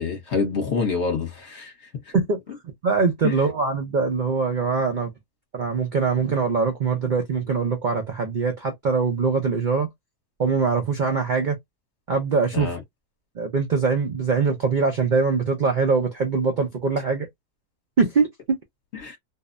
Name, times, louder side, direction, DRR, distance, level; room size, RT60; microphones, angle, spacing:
voice 1, 0.0-1.7 3.2-3.4 12.5-12.8 18.9-19.2, left 5 dB, 50° left, 1.1 m, -26 dB
voice 2, 2.8-5.1 5.5-9.9 10.4-11.6 12.1-12.7 13.4-17.3 18.0-18.6, right 4 dB, 85° right, 0.4 m, -22 dB
2.6 x 2.1 x 2.4 m
omnidirectional pair, 1.6 m